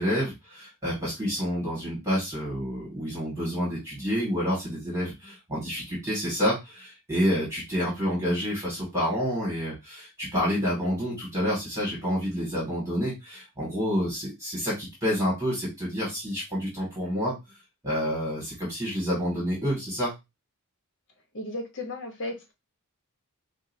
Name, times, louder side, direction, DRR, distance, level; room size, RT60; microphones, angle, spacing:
voice 1, 0.0-17.4 17.8-20.1, equal, 15° right, -5 dB, 2.1 m, -28 dB
voice 2, 21.3-22.5, left 1 dB, 55° left, 3 dB, 1.1 m, -35 dB
5.5 x 2.6 x 2.7 m, 0.22 s
head